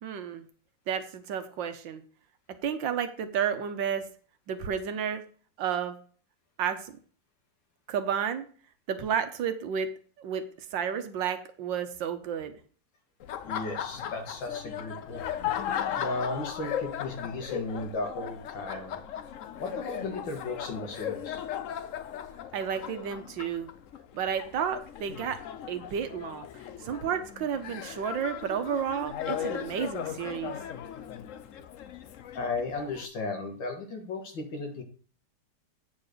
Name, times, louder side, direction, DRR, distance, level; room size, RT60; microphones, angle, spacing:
voice 1, 0.0-0.4 0.9-2.0 2.6-4.0 4.5-5.2 5.6-6.0 6.6-6.9 7.9-8.5 8.9-9.9 10.2-10.4 10.7-12.5 22.5-23.7 24.1-25.4 25.7-26.5 26.8-30.6, right 8 dB, 80° right, 9 dB, 1.6 m, -31 dB
Laughter, 13.2-33.1, left 9 dB, 65° left, 0.8 m, -37 dB
voice 2, 13.4-15.2 16.0-19.0 19.6-21.4 32.3-34.8, left 3 dB, 85° left, 3 dB, 2.5 m, -35 dB
8.8 x 4.3 x 6.5 m, 0.42 s
omnidirectional pair, 2.0 m